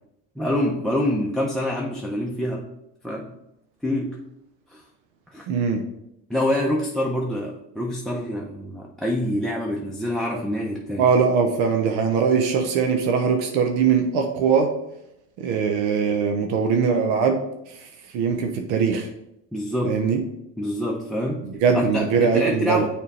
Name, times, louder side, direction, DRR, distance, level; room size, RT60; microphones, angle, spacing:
voice 1, 0.4-2.6 3.0-3.3 3.8-4.2 4.7-4.8 5.3-5.5 6.3-11.1 19.5-20.0 20.6-21.4 21.7-22.9, left 1 dB, ahead, 0 dB, 0.6 m, -26 dB
voice 2, 5.5-5.8 11.0-14.7 15.4-17.4 18.1-19.1 19.8-20.2 21.6-22.8, right 6 dB, 90° right, 4 dB, 0.8 m, -21 dB
6.6 x 3.6 x 4.1 m, 0.83 s
cardioid pair, 105°, 41 cm